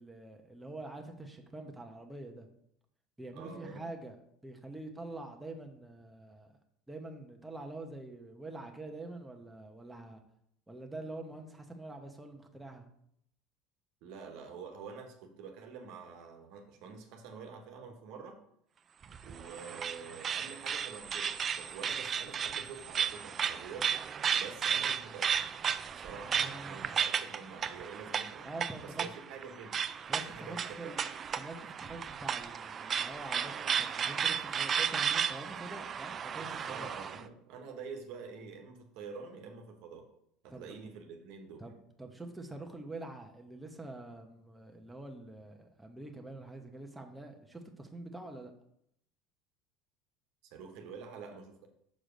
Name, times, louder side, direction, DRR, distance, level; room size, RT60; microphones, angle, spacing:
voice 1, 0.0-2.5 3.2-4.2 4.4-6.5 6.9-10.2 10.7-12.9 26.2-27.0 28.4-29.2 30.1-31.0 31.4-36.9 40.5-40.8 41.6-48.5, right 2 dB, 5° right, 3 dB, 0.9 m, -45 dB
voice 2, 3.3-3.9 14.0-18.4 19.2-23.9 24.3-25.4 26.0-28.5 28.8-29.8 30.1-31.0 36.7-40.0 40.4-41.6 50.4-51.7, right 5 dB, 65° right, 4 dB, 1.2 m, -47 dB
sound 1, 19.0-37.2, right 7 dB, 35° right, 0.4 m, -34 dB
6.3 x 4.9 x 5.1 m, 0.72 s
supercardioid pair, 110°, 0 cm